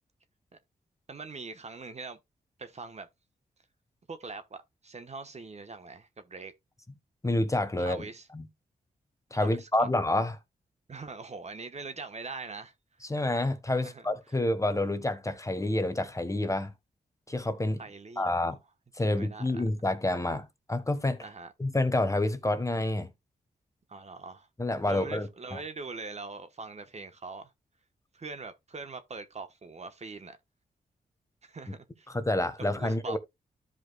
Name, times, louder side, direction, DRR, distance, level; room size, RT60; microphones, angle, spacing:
voice 1, 1.1-2.2 2.6-3.1 4.1-6.5 7.8-8.3 9.3-9.9 10.9-12.7 13.8-14.1 17.8-18.4 19.0-19.6 21.2-21.5 23.9-24.5 24.9-27.5 28.1-30.4 31.4-32.1 32.6-33.2, right 4 dB, 45° right, 1.1 m, -42 dB
voice 2, 7.2-8.0 8.3-8.4 9.3-10.4 13.1-16.7 17.3-17.8 18.2-18.6 18.9-21.2 21.6-23.1 24.6-25.6 32.1-33.2, left 1 dB, 20° left, 1.3 m, -28 dB
13.5 x 5.0 x 2.2 m
cardioid pair, 60°, 16 cm